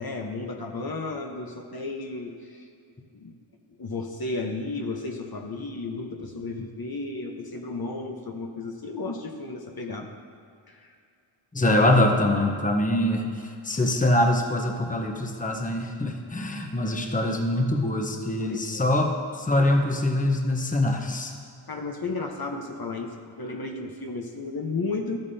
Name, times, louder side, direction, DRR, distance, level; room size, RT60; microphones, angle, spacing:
voice 1, 0.0-2.7 3.1-3.3 3.8-10.1 10.7-10.9 18.4-18.9 21.7-25.2, left 3 dB, 45° left, 2 dB, 1.0 m, -33 dB
voice 2, 11.5-21.3, left 1 dB, 15° left, 2 dB, 1.0 m, -24 dB
12.5 x 9.0 x 2.8 m, 2.4 s
cardioid pair, 50°, 49 cm